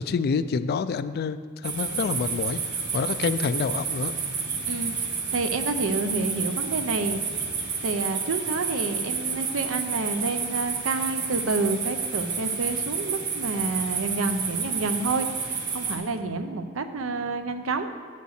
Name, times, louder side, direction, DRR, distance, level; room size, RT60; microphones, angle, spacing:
voice 1, 0.0-4.1, left 5 dB, 50° left, 13 dB, 0.3 m, -27 dB
sound 1, 1.6-16.0, right 5 dB, 55° right, 1.3 m, -30 dB
voice 2, 4.7-7.3 7.8-17.9, right 3 dB, 80° right, 8 dB, 0.6 m, -29 dB
7.8 x 5.4 x 6.5 m, 2.2 s
head